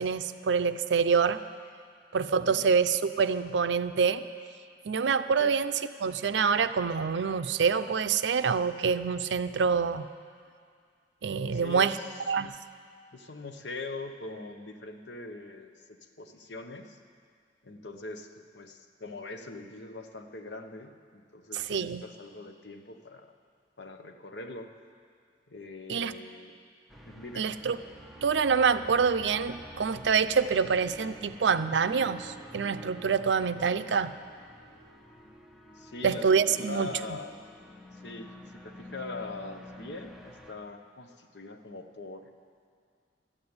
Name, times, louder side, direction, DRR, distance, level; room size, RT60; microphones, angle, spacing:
voice 1, 0.0-1.4 2.1-4.2 4.9-10.1 11.2-12.0 12.3-12.5 21.5-22.0 25.9-26.1 27.4-27.8 28.2-34.1 36.0-36.9, right 6 dB, 75° right, 12 dB, 0.5 m, -26 dB
voice 2, 11.5-12.1 13.1-17.0 17.6-23.3 23.8-24.7 25.5-26.5 27.0-27.5 35.7-37.4 37.9-42.3, left 3 dB, 70° left, 6 dB, 0.9 m, -42 dB
sound 1, 26.9-40.5, equal, ahead, 0.9 m, -49 dB
12.5 x 8.8 x 9.6 m, 2.2 s
head